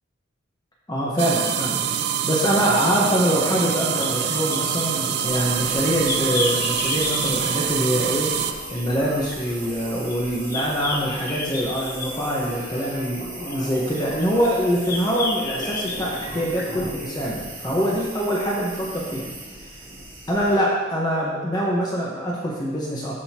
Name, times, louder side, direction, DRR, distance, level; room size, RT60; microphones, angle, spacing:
voice 1, 0.9-1.8 2.2-8.3 8.7-19.3 20.3-23.2, equal, 20° left, -5 dB, 1.2 m, -24 dB
sound 1, 1.2-8.5, right 8 dB, 55° right, 0.4 m, -25 dB
sound 2, 3.2-17.4, left 3 dB, 50° left, 0.7 m, -34 dB
sound 3, 5.2-20.6, right 2 dB, 20° right, 2.1 m, -38 dB
13.0 x 5.3 x 2.9 m, 1.2 s
head